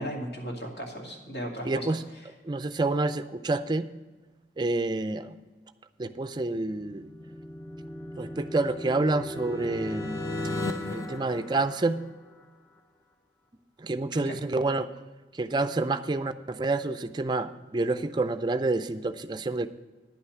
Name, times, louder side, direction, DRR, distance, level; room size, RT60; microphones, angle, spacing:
voice 1, 0.0-1.9 14.1-14.3, equal, 65° left, -1 dB, 2.4 m, -36 dB
voice 2, 1.6-2.0 2.4-3.9 4.6-5.4 6.0-7.1 8.2-10.2 10.9-12.0 13.8-14.9 15.3-19.7, right 2 dB, 25° right, 11 dB, 0.4 m, -28 dB
sound 1, 6.6-12.4, left 1 dB, 20° left, 0.7 m, -36 dB
10.5 x 5.8 x 7.9 m, 1.2 s
head